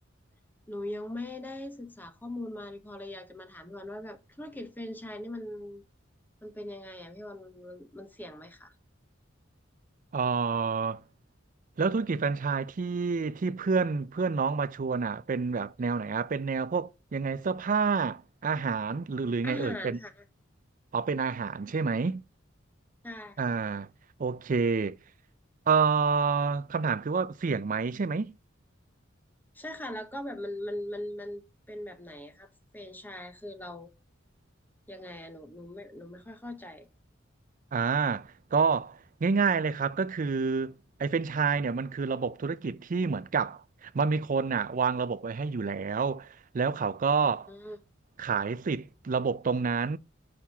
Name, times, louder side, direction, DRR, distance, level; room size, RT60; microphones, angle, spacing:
voice 1, 0.7-5.8 6.4-8.7 19.4-20.1 23.0-23.4 29.5-31.4 31.7-32.5 32.7-33.9 34.9-36.9 47.5-47.8, left 1 dB, 10° left, 0.8 m, -40 dB
voice 2, 10.1-11.0 11.8-20.0 20.9-22.2 23.4-23.9 24.2-25.0 25.7-28.3 37.7-40.7 41.0-47.5 48.2-50.0, right 5 dB, 45° right, 0.4 m, -28 dB
6.4 x 5.7 x 3.5 m
head